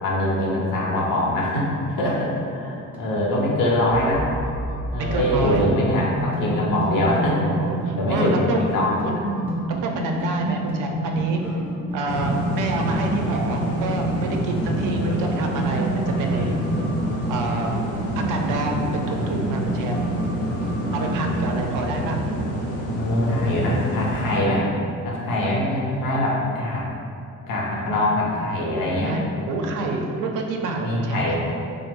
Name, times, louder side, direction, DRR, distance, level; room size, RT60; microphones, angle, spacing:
voice 1, 0.0-4.2 4.9-8.9 12.0-12.1 14.7-15.3 16.1-16.5 20.9-21.1 23.0-24.7 25.0-26.8 27.5-29.2 30.8-31.3, left 1 dB, 85° left, -3 dB, 0.8 m, -23 dB
sound 1, 2.6-21.5, right 1 dB, 5° right, 0.4 m, -29 dB
voice 2, 5.1-5.7 7.3-8.6 9.0-9.1 9.8-11.4 11.9-16.6 17.3-17.8 18.2-20.1 20.9-22.2 27.8-28.1 29.0-31.3, right 2 dB, 75° right, 2 dB, 0.5 m, -28 dB
sound 2, 12.1-24.4, equal, 50° left, 0.5 m, -28 dB
3.2 x 2.1 x 3.4 m, 2.5 s
cardioid pair, 150°, 32 cm